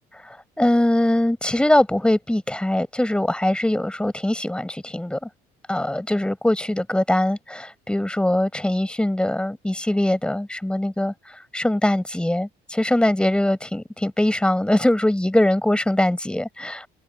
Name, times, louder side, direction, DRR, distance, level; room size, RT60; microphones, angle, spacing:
voice 1, 0.2-5.3 5.7-16.9, left 1 dB, 5° left, 5.8 m, -22 dB
cardioid pair, 110°, 17 cm